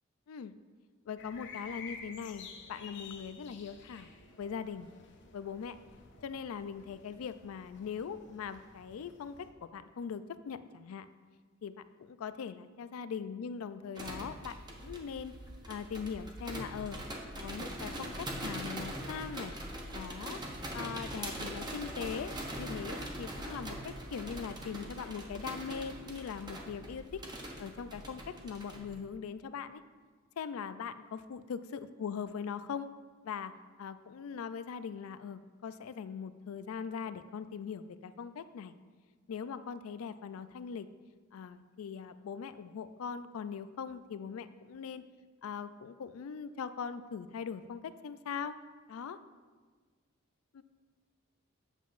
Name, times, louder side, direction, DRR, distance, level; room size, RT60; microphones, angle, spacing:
voice 1, 1.1-4.1 4.4-4.9 5.3-5.8 6.2-11.1 11.6-15.3 15.7-17.0 17.4-19.5 19.9-20.4 20.7-22.3 22.6-27.2 27.6-29.8 30.4-32.9 33.2-33.5 33.8-38.8 39.3-40.9 41.3-45.0 45.4-48.5 48.9-49.2 50.5-50.6, left 6 dB, 80° left, 13 dB, 0.4 m, -41 dB
sound 1, 1.2-9.5, left 5 dB, 60° left, 0.8 m, -52 dB
sound 2, 13.9-28.9, right 1 dB, 20° right, 0.9 m, -42 dB
8.9 x 7.2 x 2.5 m, 1.5 s
head